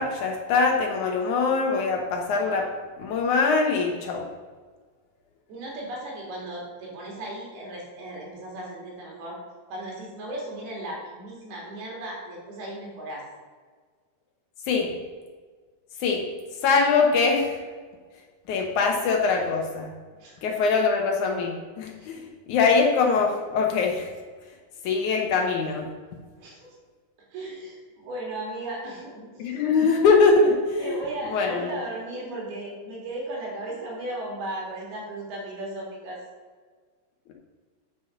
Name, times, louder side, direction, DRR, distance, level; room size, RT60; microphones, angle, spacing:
voice 1, 0.0-2.7 3.0-4.2 14.7-14.9 16.0-16.2 16.6-17.6 18.5-19.9 20.4-22.2 22.5-24.1 24.8-25.9 29.4-30.9 31.3-31.7, left 4 dB, 70° left, 1 dB, 1.8 m, -22 dB
voice 2, 5.5-9.4 9.7-13.2 20.2-20.5 22.0-22.3 26.4-26.8 27.3-29.6 30.8-36.2, right 1 dB, 70° right, -2 dB, 4.2 m, -36 dB
8.8 x 5.8 x 6.5 m, 1.5 s
omnidirectional pair, 4.8 m